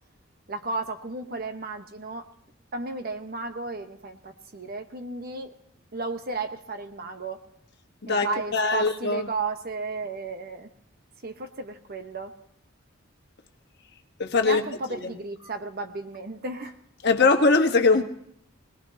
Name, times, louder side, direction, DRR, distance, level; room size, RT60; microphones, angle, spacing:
voice 1, 0.5-2.2 2.7-5.5 5.9-7.4 8.1-10.7 11.2-12.3 14.4-16.7, right 3 dB, 50° right, 7 dB, 1.1 m, -34 dB
voice 2, 8.5-9.3 14.2-14.6 14.9-15.1 17.0-18.0, left 3 dB, 55° left, 5 dB, 1.3 m, -21 dB
22.5 x 19.0 x 2.8 m, 0.69 s
head